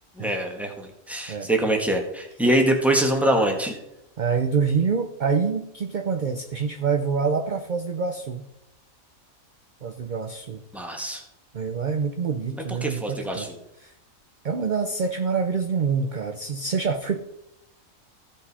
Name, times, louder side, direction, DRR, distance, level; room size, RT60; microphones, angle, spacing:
voice 1, 0.2-3.8 10.7-11.2 12.8-13.5, right 1 dB, ahead, 2 dB, 1.4 m, -24 dB
voice 2, 4.2-8.4 9.8-10.6 11.5-13.5 13.8-13.9 14.4-17.2, right 5 dB, 45° right, 6 dB, 0.6 m, -26 dB
16.0 x 5.3 x 4.1 m, 0.84 s
omnidirectional pair, 1.4 m